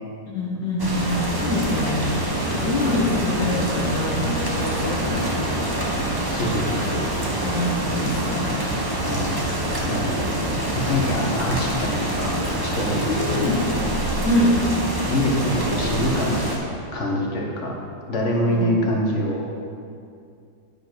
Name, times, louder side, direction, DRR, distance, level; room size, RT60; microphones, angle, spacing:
voice 1, 0.3-2.2 2.5-5.8 7.4-8.5 13.1-13.6 14.2-14.6 18.4-18.7, left 1 dB, 70° left, -5 dB, 2.4 m, -25 dB
sound 1, 0.8-16.6, right 1 dB, 15° right, 0.8 m, -25 dB
voice 2, 6.3-7.0 8.9-9.3 9.9-10.4 10.7-12.3 12.6-13.5 15.1-16.4 16.9-17.7 18.1-19.4, equal, 40° left, -2 dB, 1.6 m, -25 dB
9.8 x 5.6 x 5.9 m, 2.4 s
omnidirectional pair, 2.0 m